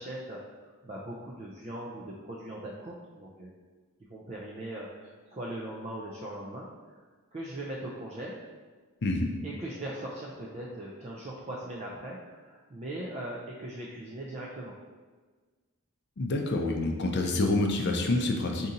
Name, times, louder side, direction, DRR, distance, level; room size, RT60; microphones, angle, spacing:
voice 1, 0.0-3.5 4.0-7.0 7.3-8.4 9.4-14.7, right 1 dB, 30° right, -5 dB, 0.4 m, -40 dB
voice 2, 16.2-18.7, left 2 dB, 50° left, 3 dB, 0.5 m, -27 dB
4.0 x 2.7 x 3.8 m, 1.4 s
head